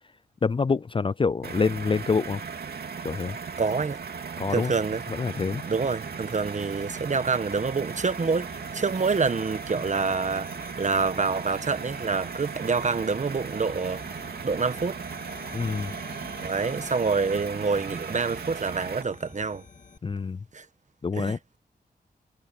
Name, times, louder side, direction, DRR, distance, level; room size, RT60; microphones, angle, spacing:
voice 1, 0.4-2.4 3.0-3.4 4.4-4.7 5.1-5.6 15.5-15.9 20.0-20.4 21.0-21.4, left 4 dB, 30° left, 0.4 m, -26 dB
sound 1, 1.4-19.0, right 6 dB, 75° right, 2.5 m, -37 dB
voice 2, 3.6-4.0 4.5-5.0 5.6-10.5 10.8-14.0 14.4-15.0 16.4-19.6 20.5-20.6 21.1-21.6, right 4 dB, 45° right, 1.3 m, -27 dB
sound 2, 5.3-20.0, left 4 dB, 50° left, 2.2 m, -48 dB
cardioid pair, 65°, 17 cm